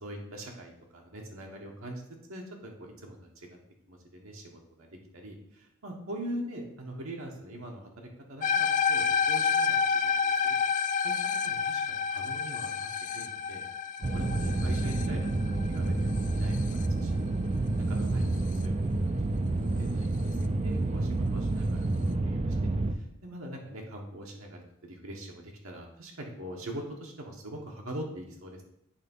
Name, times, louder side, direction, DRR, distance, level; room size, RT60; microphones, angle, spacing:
voice 1, 0.0-2.0 2.3-3.5 3.9-10.6 11.0-11.1 11.4-11.8 12.1-12.9 13.1-13.6 14.1-17.2 17.5-19.0 19.5-28.6, right 1 dB, 70° right, 0 dB, 1.2 m, -43 dB
sound 1, 8.4-16.9, left 6 dB, 35° left, 0.3 m, -29 dB
sound 2, 14.0-22.9, right 2 dB, 30° right, 0.4 m, -29 dB
8.6 x 3.4 x 5.4 m, 0.83 s
head